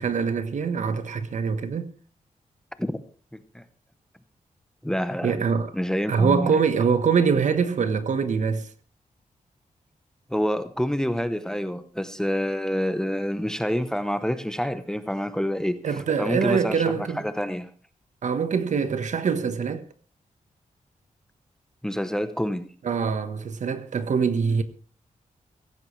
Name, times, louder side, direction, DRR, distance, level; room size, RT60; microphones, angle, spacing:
voice 1, 0.0-1.9 5.2-5.7 6.1-8.7 15.8-17.2 18.2-19.8 22.8-24.6, right 6 dB, 65° right, 1.2 m, -24 dB
voice 2, 3.3-3.6 4.8-5.3 5.7-6.6 10.3-15.8 16.2-17.7 21.8-22.7, equal, 5° left, 0.8 m, -27 dB
16.5 x 15.5 x 3.2 m
wide cardioid pair, 160°, 14 cm